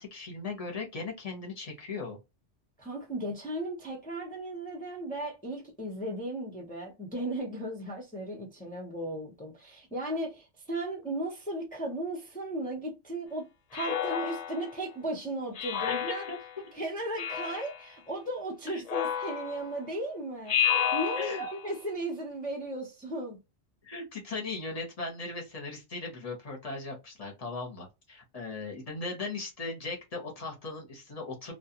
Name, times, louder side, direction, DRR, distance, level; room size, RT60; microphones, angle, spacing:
voice 1, 0.0-2.2 15.9-16.0 16.3-16.4 18.7-18.8 21.2-21.5 23.8-31.5, left 3 dB, 35° left, 0.9 m, -38 dB
voice 2, 2.8-16.2 16.7-23.4, right 1 dB, 10° left, 0.6 m, -36 dB
Speech synthesizer, 13.7-14.8 15.6-16.6 17.2-17.8 18.9-19.8 20.5-21.6, left 9 dB, 65° left, 0.4 m, -31 dB
2.4 x 2.2 x 2.8 m
omnidirectional pair, 1.2 m